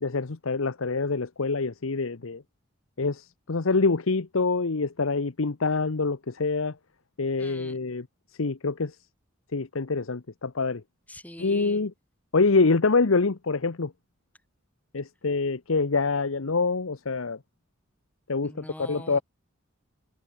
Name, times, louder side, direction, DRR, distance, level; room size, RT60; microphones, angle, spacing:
voice 1, 0.0-2.4 3.0-6.8 7.2-8.1 8.4-9.0 9.5-10.8 11.4-11.9 12.3-13.9 14.9-17.4 18.3-19.2, left 3 dB, 75° left, 0.9 m, -25 dB
voice 2, 7.4-7.8 11.1-11.8 18.4-19.2, left 1 dB, 5° left, 4.3 m, -43 dB
head